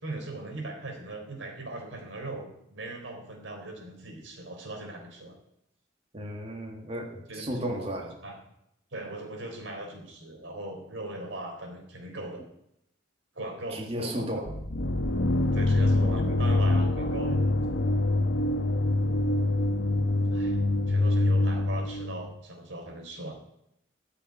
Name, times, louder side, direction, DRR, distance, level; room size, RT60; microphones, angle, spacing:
voice 1, 0.0-5.4 7.3-7.9 8.2-8.4 8.9-12.4 13.4-14.3 15.5-17.4 20.3-20.6 20.9-23.4, right 2 dB, 80° right, 3 dB, 3.7 m, -39 dB
voice 2, 6.1-8.1 13.7-14.5, equal, 30° right, 1 dB, 1.8 m, -34 dB
sound 1, 14.5-22.3, left 2 dB, 85° left, 1.1 m, -25 dB
14.0 x 6.9 x 9.3 m, 0.80 s
head